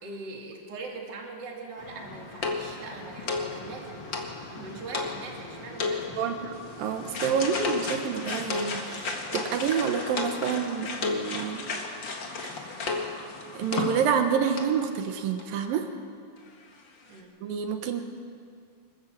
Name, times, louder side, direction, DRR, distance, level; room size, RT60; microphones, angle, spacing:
voice 1, 0.0-4.0 4.5-6.4 7.3-7.4 17.1-17.3, right 3 dB, 30° right, 0 dB, 2.6 m, -41 dB
sound 1, 1.8-14.3 14.6-14.8 15.4-15.5 15.7-15.8, left 3 dB, 45° left, 1.6 m, -34 dB
voice 2, 6.2-6.5 6.8-11.7 12.4-13.1 13.5-15.9 17.4-18.0, right 7 dB, 70° right, 6 dB, 2.8 m, -28 dB
25.5 x 14.0 x 7.6 m, 2.3 s
omnidirectional pair, 4.5 m